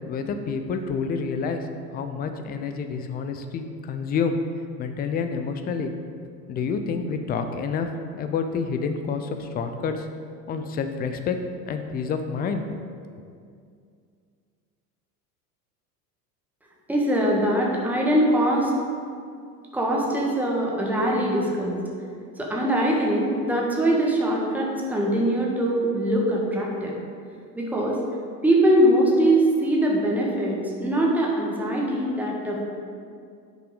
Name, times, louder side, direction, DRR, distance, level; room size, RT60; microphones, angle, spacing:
voice 1, 0.1-1.6 1.9-4.4 4.8-5.9 6.5-7.9 8.1-10.1 10.5-11.4 11.7-12.6 13.1-13.2, left 5 dB, 20° left, 7 dB, 0.5 m, -28 dB
voice 2, 16.9-18.7 19.7-21.8 22.4-27.0 27.6-28.0 28.4-32.6, right 1 dB, 5° right, -3 dB, 1.5 m, -22 dB
10.0 x 5.5 x 4.0 m, 2.3 s
figure-of-eight pair, 80°, 49 cm